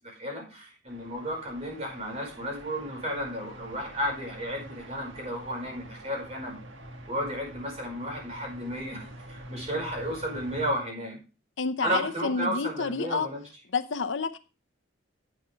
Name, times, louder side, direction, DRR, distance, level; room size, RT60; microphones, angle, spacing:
voice 1, 0.0-6.6 7.1-11.2 11.8-13.4, equal, 35° right, 5.2 m, -33 dB
sound 1, 0.9-10.7, right 1 dB, 75° right, 1.6 m, -46 dB
voice 2, 11.6-13.3 13.7-14.4, left 4 dB, 70° left, 0.8 m, -29 dB
10.5 x 8.5 x 3.3 m
head